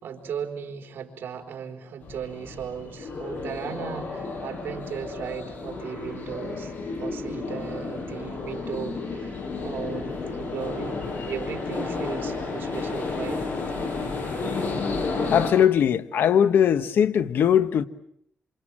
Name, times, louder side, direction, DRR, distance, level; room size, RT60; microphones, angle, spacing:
voice 1, 0.0-6.7 7.0-13.5, right 7 dB, 80° right, 4.1 m, -36 dB
sound 1, 2.0-15.5, left 3 dB, 60° left, 7.3 m, -32 dB
voice 2, 15.3-17.8, left 9 dB, 80° left, 1.3 m, -20 dB
27.5 x 27.5 x 7.6 m
cardioid pair, 110°, 4 cm